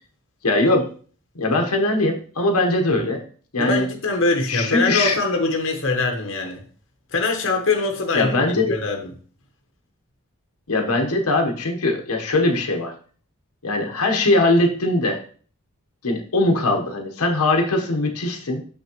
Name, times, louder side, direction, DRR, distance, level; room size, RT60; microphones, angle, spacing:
voice 1, 0.4-0.9 1.3-3.2 3.5-3.9 4.5-5.2 8.1-8.8 10.7-12.9 13.6-15.2 16.0-18.6, left 2 dB, 85° left, 3 dB, 1.1 m, -21 dB
voice 2, 3.6-6.6 7.1-9.1, left 3 dB, 55° left, 3 dB, 1.0 m, -23 dB
6.3 x 6.1 x 3.0 m, 0.43 s
head